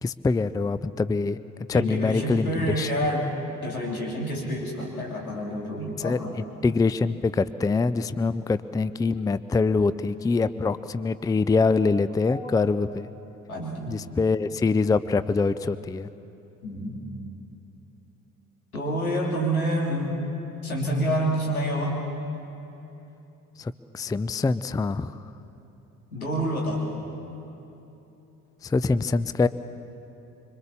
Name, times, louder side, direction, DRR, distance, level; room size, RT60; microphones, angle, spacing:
voice 1, 0.0-1.4 1.7-2.9 6.0-13.1 13.9-16.1 23.6-25.2 28.6-29.5, left 4 dB, 10° left, 15 dB, 0.5 m, -24 dB
voice 2, 1.7-6.3 12.1-12.4 13.5-14.0 16.6-17.0 18.7-20.2 20.6-22.0 26.1-26.8, equal, 85° left, -2 dB, 3.2 m, -28 dB
25.5 x 24.5 x 7.1 m, 3.0 s
figure-of-eight pair, 50°, 42 cm